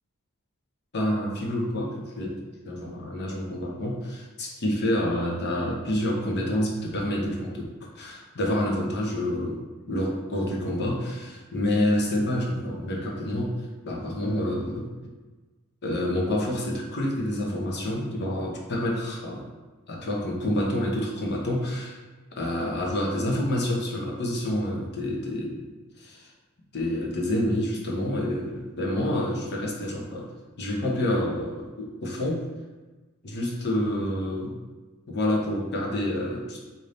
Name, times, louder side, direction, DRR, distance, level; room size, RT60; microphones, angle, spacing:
voice 1, 0.9-2.4 2.6-13.5 13.8-14.9 15.8-19.5 19.9-22.0 22.4-25.7 26.0-26.3 26.7-30.3 30.6-32.5 33.2-34.6 35.1-36.6, left 1 dB, 50° left, -1 dB, 0.8 m, -28 dB
3.4 x 2.7 x 3.9 m, 1.3 s
head